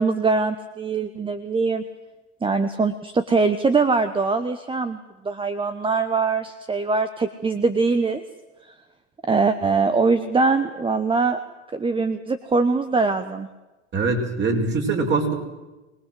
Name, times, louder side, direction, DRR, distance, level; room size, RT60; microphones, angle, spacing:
voice 1, 0.0-1.8 2.4-8.2 9.3-11.4 11.7-13.5, right 4 dB, 15° right, 10 dB, 1.2 m, -22 dB
voice 2, 13.9-15.3, right 3 dB, 30° right, 2 dB, 5.5 m, -22 dB
23.5 x 19.5 x 7.8 m, 1.1 s
hypercardioid pair, 100°, 36 cm